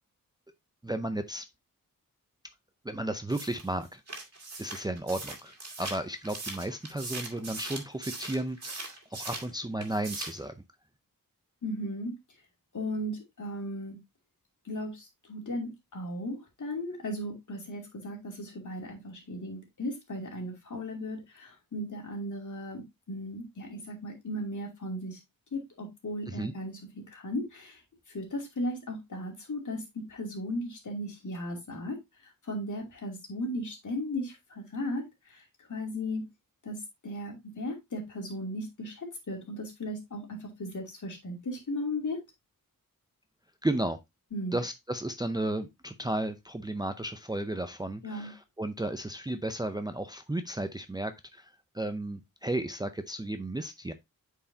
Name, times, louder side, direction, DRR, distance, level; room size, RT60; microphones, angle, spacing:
voice 1, 0.8-1.5 2.8-4.0 4.6-10.5 26.3-26.5 43.6-44.0 44.5-53.9, right 1 dB, 10° right, 0.5 m, -34 dB
sound 1, 3.3-9.5 9.8-10.5, right 3 dB, 45° right, 2.1 m, -40 dB
voice 2, 11.6-12.2 12.7-14.0 14.6-25.2 25.5-27.8 28.1-36.3 36.6-42.2 44.3-44.6 48.0-48.3, left 1 dB, 55° left, 2.6 m, -36 dB
8.6 x 4.7 x 2.7 m
wide cardioid pair, 110°, 35 cm